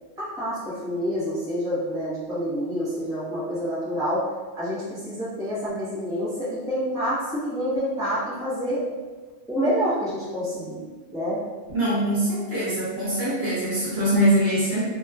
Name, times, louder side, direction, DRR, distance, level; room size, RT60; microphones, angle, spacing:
voice 1, 0.2-4.2 4.5-8.8 9.5-10.8 11.1-11.4, equal, 5° right, -11 dB, 0.9 m, -27 dB
voice 2, 11.7-14.8, equal, 65° right, -8 dB, 1.1 m, -23 dB
2.9 x 2.3 x 2.3 m, 1.3 s
omnidirectional pair, 1.2 m